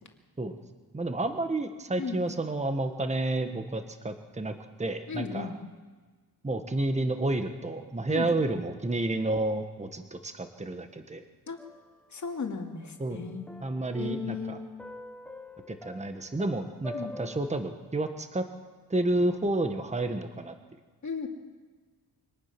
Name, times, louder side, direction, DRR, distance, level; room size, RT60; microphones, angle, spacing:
voice 1, 0.9-5.5 6.4-11.2 13.0-13.2 13.6-14.6 15.7-18.4 18.9-20.5, right 2 dB, 15° right, 7 dB, 1.4 m, -30 dB
voice 2, 5.1-5.5 8.1-8.3 11.5-11.6 12.1-13.5 14.0-14.7 16.9-17.1 21.0-21.3, left 5 dB, 50° left, 3 dB, 2.6 m, -35 dB
sound 1, 11.6-12.7 13.0-17.5, left 1 dB, 5° left, 1.0 m, -45 dB
25.0 x 19.0 x 6.1 m, 1.4 s
cardioid pair, 100°, 39 cm